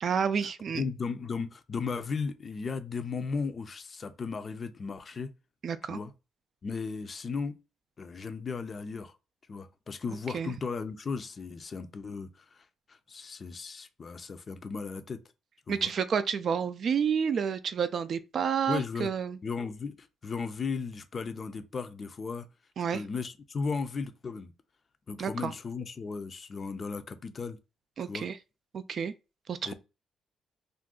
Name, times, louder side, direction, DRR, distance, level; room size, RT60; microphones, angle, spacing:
voice 1, 0.0-0.8 5.6-6.0 10.3-10.5 15.7-19.4 22.8-23.0 25.2-25.5 28.0-28.4 28.7-29.1 29.5-29.7, right 7 dB, 55° right, 0.3 m, -30 dB
voice 2, 0.7-5.3 5.9-6.1 6.6-7.6 8.0-9.1 9.5-15.2 15.7-15.9 18.7-19.1 19.4-22.5 22.9-24.5 25.1-27.6 28.1-28.3 29.7-29.8, left 5 dB, 40° left, 0.5 m, -36 dB
2.5 x 2.3 x 3.6 m
cardioid pair, 90°, 0 cm